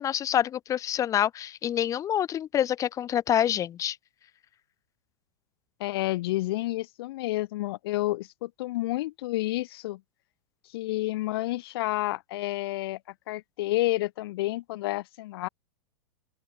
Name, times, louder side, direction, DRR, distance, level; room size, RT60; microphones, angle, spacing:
voice 1, 0.0-4.0, left 10 dB, 25° left, 1.1 m, -26 dB
voice 2, 5.8-10.0 10.7-13.0 13.3-15.5, left 17 dB, 60° left, 1.8 m, -30 dB
open air
hypercardioid pair, 135°, 14 cm